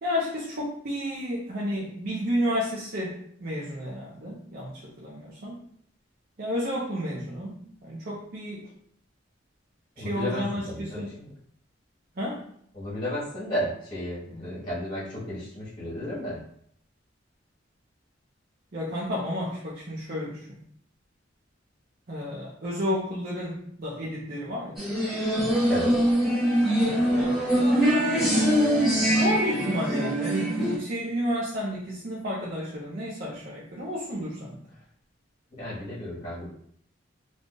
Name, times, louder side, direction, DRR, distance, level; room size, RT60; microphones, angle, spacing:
voice 1, 0.0-5.6 6.4-8.7 10.0-11.1 12.2-12.5 18.7-20.6 22.1-24.8 25.4-25.6 27.2-27.5 28.6-34.6, equal, 50° right, -6 dB, 0.6 m, -31 dB
voice 2, 10.0-11.3 12.7-16.4 25.7-26.0 35.5-36.5, equal, 25° left, -8 dB, 1.1 m, -33 dB
sound 1, 24.8-30.8, equal, ahead, 1.0 m, -23 dB
2.5 x 2.4 x 3.7 m, 0.64 s
head